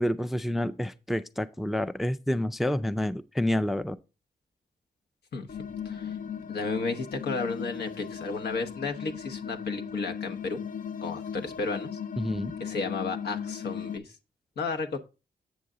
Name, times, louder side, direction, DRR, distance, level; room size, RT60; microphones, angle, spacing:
voice 1, 0.0-4.0 12.2-12.6, left 1 dB, ahead, 0.4 m, -28 dB
sound 1, 5.5-14.0, left 7 dB, 55° left, 0.5 m, -37 dB
voice 2, 6.5-10.6 11.0-11.9 12.6-14.0 14.6-15.0, left 4 dB, 75° left, 1.1 m, -33 dB
7.9 x 6.6 x 3.7 m
cardioid pair, 95°, 17 cm